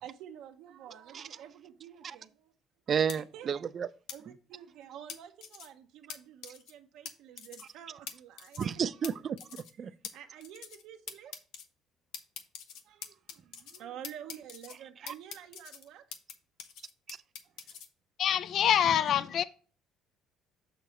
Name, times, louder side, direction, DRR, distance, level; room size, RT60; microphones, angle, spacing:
voice 1, 0.0-2.5 3.1-3.5 4.1-8.7 9.8-11.4 12.7-16.1 17.4-17.5, right 10 dB, 80° right, 0.7 m, -49 dB
voice 2, 2.9-3.9 8.6-9.9 17.1-17.2, right 7 dB, 40° right, 0.4 m, -32 dB
sound 1, 3.1-3.2 4.1-4.2 5.1-5.7 6.1-6.2 6.4-6.7 7.1-7.2 7.4-7.7 8.1-8.2 8.4-8.7 9.0-9.1 9.4-9.7 10.0-10.1 10.4-10.8 11.1-11.7 12.1-13.8 14.0-14.8 15.1-16.3 16.6-17.9, left 8 dB, 80° left, 0.8 m, -43 dB
voice 3, 18.2-19.4, left 9 dB, 55° left, 0.4 m, -25 dB
6.7 x 6.4 x 3.0 m
cardioid pair, 120°, 0 cm